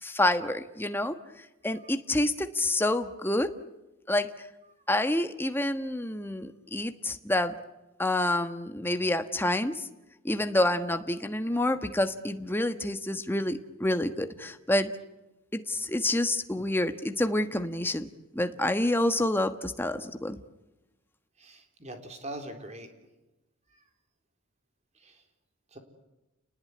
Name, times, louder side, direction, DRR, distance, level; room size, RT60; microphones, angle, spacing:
voice 1, 0.0-3.5 4.1-4.5 4.9-7.6 8.0-9.9 10.2-14.9 15.5-18.1 18.3-20.4, left 1 dB, 10° left, 8 dB, 1.3 m, -28 dB
voice 2, 21.4-22.9 25.0-25.2 25.7-25.8, right 1 dB, 30° right, 6 dB, 3.9 m, -42 dB
29.5 x 20.0 x 9.5 m, 1.0 s
head